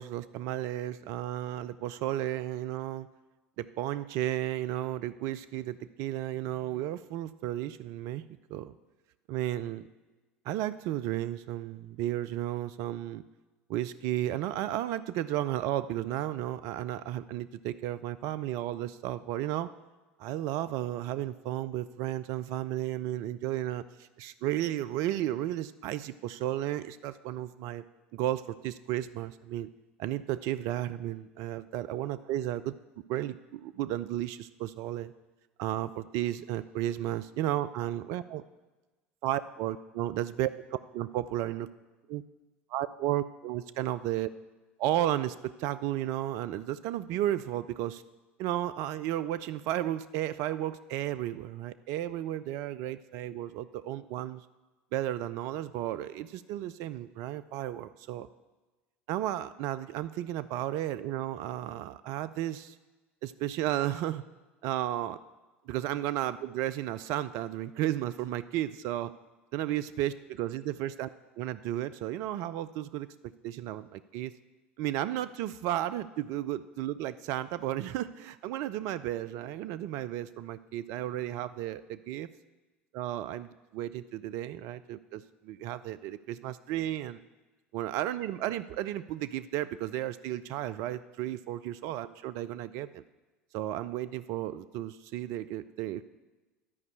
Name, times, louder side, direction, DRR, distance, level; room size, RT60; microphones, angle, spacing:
voice 1, 0.0-3.1 3.6-8.2 8.5-8.7 9.3-9.9 10.5-13.2 13.7-19.7 20.2-27.8 28.1-29.7 30.0-32.7 33.1-35.1 35.6-38.4 39.2-41.7 42.1-42.2 42.7-44.3 44.8-48.0 48.4-54.4 54.9-58.3 59.1-62.7 63.2-64.2 64.6-65.2 65.7-69.1 69.5-71.1 71.4-73.1 73.4-74.3 74.8-82.3 82.9-87.2 87.7-93.0 93.5-96.1, right 13 dB, 55° right, 13 dB, 0.4 m, -33 dB
11.0 x 5.4 x 8.5 m, 1.2 s
figure-of-eight pair, 70°, 7 cm